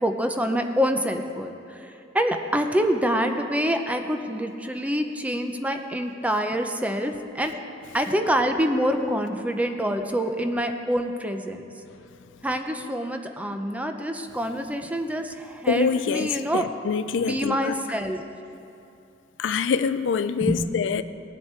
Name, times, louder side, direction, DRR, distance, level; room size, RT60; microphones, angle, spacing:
voice 1, 0.0-7.5 7.9-11.6 12.4-16.7 17.2-18.2 20.4-20.7, equal, 10° right, 0.6 m, -26 dB
voice 2, 15.7-17.7 19.4-21.0, left 6 dB, 70° left, 0.4 m, -25 dB
19.0 x 7.7 x 4.4 m
head